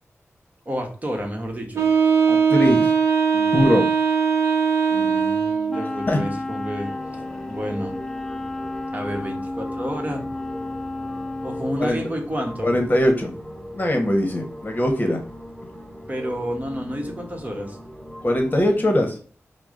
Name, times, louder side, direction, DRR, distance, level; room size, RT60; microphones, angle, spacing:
voice 1, 0.6-1.9 4.9-6.9 7.5-8.0 8.9-10.2 11.4-12.7 16.1-17.8, equal, 30° right, 2 dB, 1.1 m, -30 dB
Wind instrument woodwind instrument, 1.7-5.9, right 6 dB, 70° right, 0.9 m, -20 dB
voice 2, 2.3-2.9 3.3-3.9 6.1-6.2 11.8-12.0 12.6-13.3 13.7-15.2 18.2-19.1, left 1 dB, 35° left, 3 dB, 1.0 m, -21 dB
Wind instrument woodwind instrument 2, 5.7-11.8, left 2 dB, 10° left, 0.4 m, -32 dB
sound 1, 6.8-18.6, equal, 5° right, 1.6 m, -39 dB
4.7 x 2.1 x 3.6 m, 0.41 s
wide cardioid pair, 80°, 5 cm